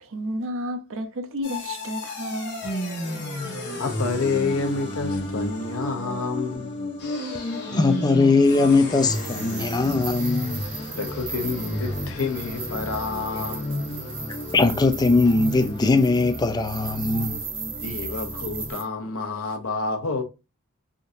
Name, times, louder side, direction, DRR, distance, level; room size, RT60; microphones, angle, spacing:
voice 1, 0.0-2.6, equal, 65° right, 0.6 m, -31 dB
sound 1, 1.4-18.7, left 1 dB, 50° left, 1.2 m, -32 dB
voice 2, 3.4-6.8 10.9-13.9 17.8-20.2, left 4 dB, 70° left, 0.7 m, -29 dB
voice 3, 7.7-10.7 13.3-13.4 14.0-14.1 14.5-17.4, left 3 dB, 20° left, 0.3 m, -20 dB
sound 2, 9.0-18.8, right 5 dB, 25° right, 1.0 m, -37 dB
3.6 x 2.7 x 2.5 m
head